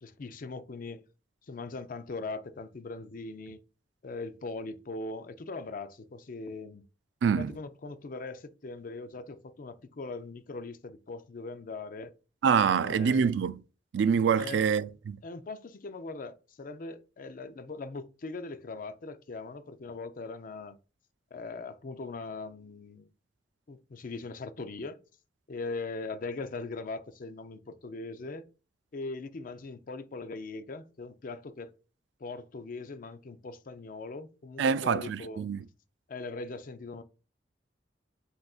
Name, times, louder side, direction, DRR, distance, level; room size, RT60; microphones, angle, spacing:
voice 1, 0.0-1.0 1.5-3.6 4.0-6.8 7.4-12.1 12.7-13.3 14.3-14.7 15.2-20.7 21.3-23.1 23.7-25.0 25.5-28.5 28.9-31.7 32.2-35.5 36.1-37.0, left 3 dB, 50° left, 0.5 m, -40 dB
voice 2, 7.2-7.5 12.4-13.6 13.9-15.2 34.6-35.6, right 6 dB, 80° right, 0.3 m, -26 dB
7.8 x 2.6 x 2.3 m
head